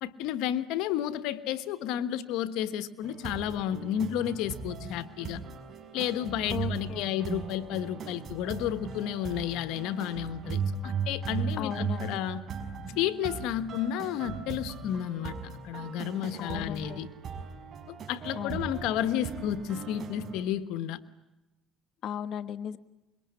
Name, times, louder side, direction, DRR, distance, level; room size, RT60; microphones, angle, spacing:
voice 1, 0.0-5.4 5.9-12.4 13.0-17.1 17.9-21.0, left 11 dB, 85° left, 13 dB, 1.3 m, -32 dB
sound 1, 3.0-20.4, right 6 dB, 45° right, 5.7 m, -38 dB
voice 2, 6.5-7.3 11.6-12.2 16.4-17.0 18.4-18.7 22.0-22.8, left 9 dB, 55° left, 11 dB, 1.3 m, -36 dB
26.0 x 23.0 x 9.8 m, 0.98 s
cardioid pair, 110°, 0 cm